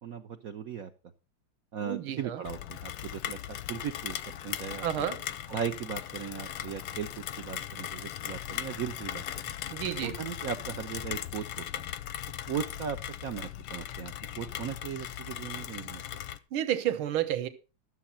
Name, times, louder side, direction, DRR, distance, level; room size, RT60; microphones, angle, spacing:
voice 1, 0.0-0.9 1.7-5.1 5.5-9.5 10.0-11.9 12.5-13.0 13.2-16.2, right 8 dB, 60° right, 0.9 m, -38 dB
voice 2, 1.8-2.4 4.8-5.2 9.7-10.1 16.5-17.5, right 11 dB, 75° right, 2.0 m, -30 dB
Rain, 2.4-16.4, left 11 dB, 85° left, 1.6 m, -38 dB
13.0 x 7.5 x 5.6 m
omnidirectional pair, 2.3 m